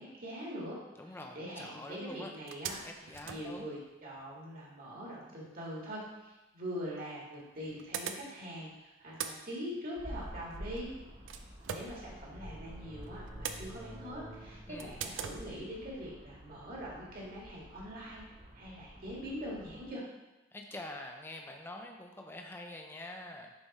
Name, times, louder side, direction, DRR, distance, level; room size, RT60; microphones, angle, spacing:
voice 1, 0.0-0.8 1.4-2.8 3.2-10.9 11.3-18.2 18.5-20.0, equal, 50° right, -4 dB, 1.8 m, -43 dB
voice 2, 1.0-2.3 2.8-3.8 14.7-15.1 20.5-23.5, left 1 dB, 10° left, 2 dB, 0.5 m, -46 dB
sound 1, 1.7-1.8 2.1-2.2 2.5-4.3 6.3-6.4 7.3-8.7 8.9-12.7 13.0-14.2 14.8-15.4, right 7 dB, 85° right, 0.5 m, -43 dB
sound 2, 10.0-19.9, equal, 35° right, 1.2 m, -49 dB
7.1 x 3.4 x 4.1 m, 1.0 s
head